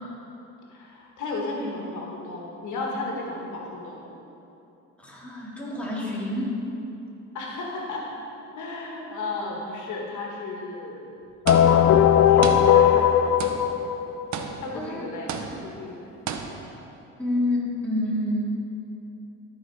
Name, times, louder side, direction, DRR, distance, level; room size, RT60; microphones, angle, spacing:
voice 1, 0.7-4.1 7.3-8.1 8.5-11.1 11.5-13.1 14.6-16.1, left 2 dB, 75° left, -1 dB, 1.5 m, -34 dB
voice 2, 5.0-6.6 14.7-15.0 17.2-18.5, left 1 dB, 5° left, -5 dB, 2.1 m, -28 dB
sound 1, 11.5-14.3, left 9 dB, 55° left, 0.5 m, -18 dB
sound 2, 11.5-12.1 12.4-13.1 13.4-13.9 14.3-14.9 15.3-15.8 16.3-16.9, right 6 dB, 65° right, 0.8 m, -34 dB
13.0 x 4.6 x 4.7 m, 2.9 s
cardioid pair, 90°, 30 cm